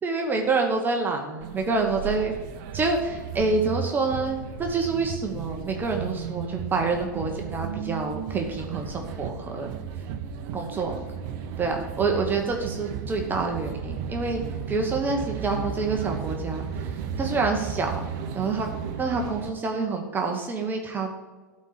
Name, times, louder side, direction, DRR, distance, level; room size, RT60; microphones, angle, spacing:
voice 1, 0.0-2.3 2.7-9.8 10.5-11.0 11.6-14.4 14.7-16.9 17.2-18.0 18.3-18.7 19.0-21.1, right 4 dB, 20° right, 2 dB, 1.2 m, -27 dB
sound 1, 1.4-19.5, right 7 dB, 45° right, 0.9 m, -34 dB
13.0 x 4.3 x 6.7 m, 1.4 s
figure-of-eight pair, 95°, 10 cm